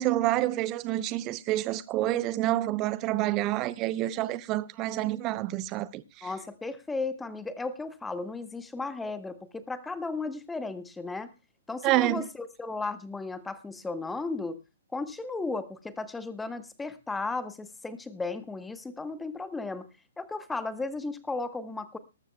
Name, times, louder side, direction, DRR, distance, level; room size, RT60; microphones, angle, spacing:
voice 1, 0.0-6.3 11.8-12.2, right 15 dB, 25° right, 0.7 m, -28 dB
voice 2, 6.2-11.3 11.7-14.6 14.9-19.9 20.2-22.0, left 3 dB, 5° left, 1.1 m, -35 dB
19.5 x 14.0 x 2.3 m
figure-of-eight pair, 125°, 0 cm